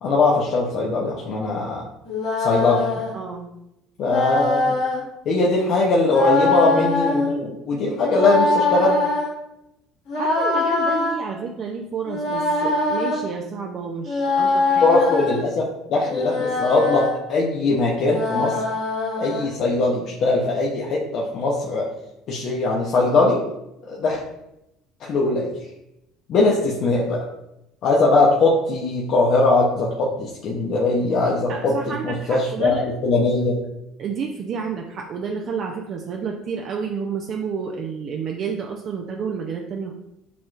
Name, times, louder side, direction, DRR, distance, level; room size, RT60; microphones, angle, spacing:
voice 1, 0.0-1.8 2.4-2.8 4.0-4.7 5.3-8.9 14.8-18.6 19.2-21.9 22.3-23.4 23.9-24.2 25.0-25.5 26.3-27.3 27.8-33.6, left 3 dB, 55° left, -3 dB, 0.8 m, -20 dB
sound 1, 2.1-3.1 4.0-5.0 6.1-7.3 8.1-9.3 10.1-11.1 12.1-13.2 14.1-15.4 16.1-17.1 18.0-19.5, left 3 dB, 75° left, 1.5 m, -22 dB
voice 2, 3.1-3.5 10.2-15.0 31.5-32.9 34.0-39.9, right 6 dB, 50° right, 1 dB, 0.5 m, -30 dB
6.9 x 3.1 x 2.4 m, 0.88 s
hypercardioid pair, 75°, 0 cm